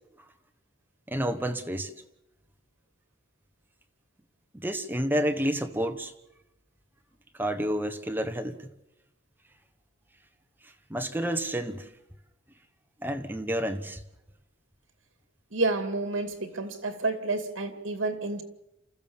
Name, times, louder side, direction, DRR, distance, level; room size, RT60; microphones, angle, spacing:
voice 1, 1.1-1.9 4.5-6.1 7.4-8.7 10.9-11.9 13.0-14.0, equal, 10° right, 1.2 m, -29 dB
voice 2, 15.5-18.4, right 3 dB, 70° right, 2.5 m, -29 dB
28.5 x 14.5 x 7.2 m
head